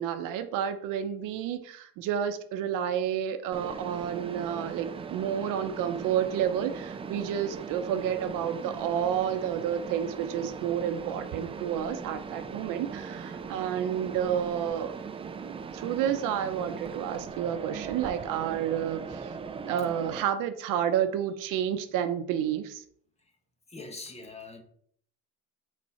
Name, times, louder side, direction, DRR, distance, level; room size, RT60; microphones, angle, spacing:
voice 1, 0.0-14.9 15.2-19.3 19.6-22.8, right 9 dB, 70° right, 9 dB, 0.8 m, -30 dB
Mechanisms, 3.5-20.2, right 5 dB, 15° right, 0.4 m, -39 dB
voice 2, 23.7-24.6, left 3 dB, 20° left, 5 dB, 1.1 m, -42 dB
6.2 x 4.3 x 4.4 m, 0.62 s
cardioid pair, 115°, 33 cm